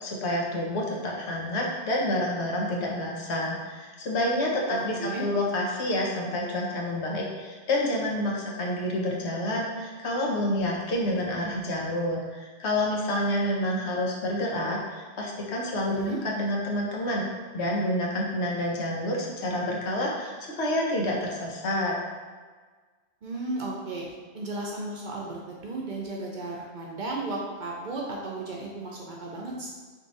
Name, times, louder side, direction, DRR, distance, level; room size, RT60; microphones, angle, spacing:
voice 1, 0.0-17.3 17.5-22.0, left 1 dB, 85° left, -2 dB, 1.1 m, -28 dB
voice 2, 4.7-5.2 15.9-16.2 23.2-24.1 24.3-29.7, right 2 dB, 55° right, -2 dB, 0.6 m, -34 dB
3.6 x 2.7 x 3.9 m, 1.5 s
omnidirectional pair, 1.1 m